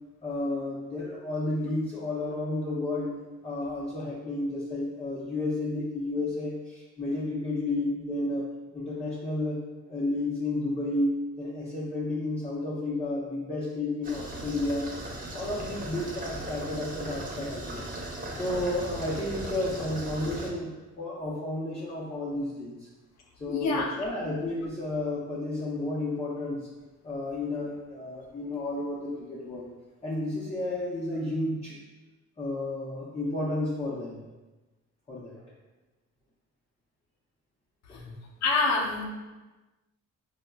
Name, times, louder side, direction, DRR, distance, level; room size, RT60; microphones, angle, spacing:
voice 1, 0.2-3.2 3.4-8.4 8.7-9.6 9.9-14.9 15.3-17.9 18.3-22.9 23.4-26.7 27.0-29.7 30.0-31.8 32.4-34.2 35.1-35.4 37.9-38.0, left 2 dB, 20° left, -7 dB, 0.6 m, -32 dB
sound 1, 14.0-20.5, right 1 dB, 30° right, 0.7 m, -38 dB
voice 2, 23.5-24.0 24.2-24.4 37.9-39.1, left 3 dB, 65° left, 1 dB, 0.6 m, -28 dB
4.5 x 2.1 x 2.2 m, 1.2 s
cardioid pair, 90°, 30 cm